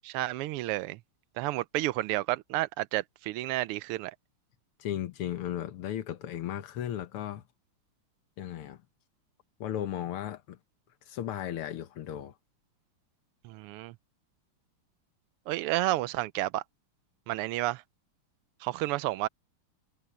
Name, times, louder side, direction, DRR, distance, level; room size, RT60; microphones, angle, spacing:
voice 1, 0.0-1.0 1.4-4.1 13.4-13.9 15.5-16.6 17.3-17.8 18.6-19.3, right 17 dB, 90° right, 1.5 m, -31 dB
voice 2, 4.8-7.4 8.4-8.8 9.6-10.6 11.1-12.3, left 11 dB, 80° left, 2.0 m, -35 dB
omnidirectional pair, 2.4 m